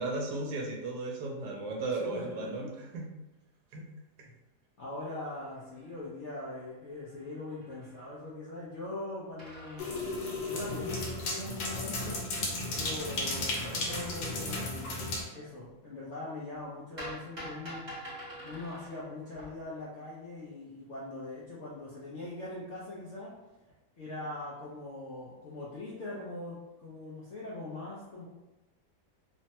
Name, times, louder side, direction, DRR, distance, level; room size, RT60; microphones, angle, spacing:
voice 1, 0.0-2.7 2.9-3.1 3.7-3.9, right 3 dB, 80° right, 0 dB, 1.2 m, -35 dB
voice 2, 1.6-2.7 4.2-4.3 4.8-12.4 12.7-15.0 15.3-17.8 18.4-23.3 24.0-28.3, left 2 dB, 65° left, -7 dB, 0.7 m, -42 dB
sound 1, 5.3-6.3 6.6-6.7 6.9-8.0 9.4-12.1 13.6-15.1 17.0-19.8, equal, 30° right, 0.9 m, -48 dB
sound 2, 9.8-15.2, left 2 dB, 85° left, 1.3 m, -34 dB
3.2 x 2.1 x 2.7 m, 1.0 s
omnidirectional pair, 1.8 m